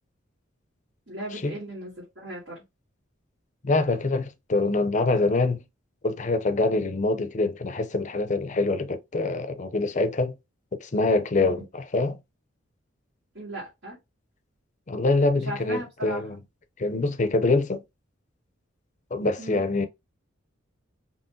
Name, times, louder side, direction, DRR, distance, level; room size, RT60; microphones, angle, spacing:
voice 1, 1.1-2.6 11.4-11.5 13.3-14.0 15.4-16.2 19.4-19.6, right 1 dB, 70° right, 2.9 m, -37 dB
voice 2, 3.6-5.6 6.0-10.3 10.8-12.2 14.9-16.4 16.8-17.8 19.1-19.9, left 3 dB, 40° left, 0.6 m, -25 dB
5.5 x 3.0 x 2.7 m
head